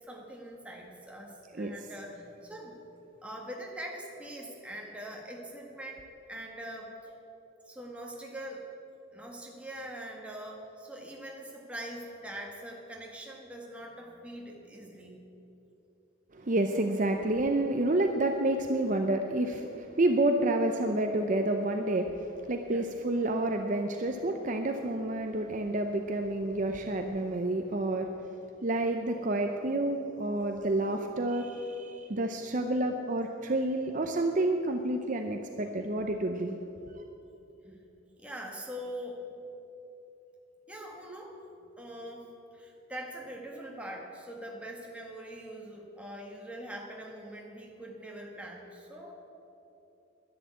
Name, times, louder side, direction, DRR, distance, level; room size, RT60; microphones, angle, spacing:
voice 1, 0.0-2.8 3.2-7.1 7.7-8.7 9.1-15.2 22.6-22.9 37.6-37.9 38.2-39.2 40.7-41.4 41.8-42.3 42.5-49.1, right 1 dB, 5° right, -1 dB, 1.7 m, -43 dB
voice 2, 16.3-28.3 28.6-36.6 37.0-37.1, right 1 dB, 40° right, 4 dB, 0.6 m, -29 dB
11.0 x 10.5 x 8.3 m, 3.0 s
head